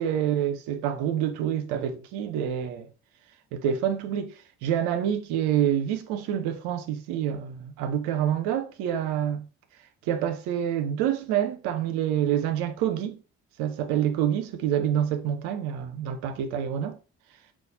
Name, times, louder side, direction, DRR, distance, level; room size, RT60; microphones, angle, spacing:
voice 1, 0.0-2.9 3.5-4.3 4.6-9.4 10.1-13.2 13.6-17.0, right 9 dB, 85° right, 0.6 m, -27 dB
4.1 x 2.3 x 4.1 m
hypercardioid pair, 45°, 37 cm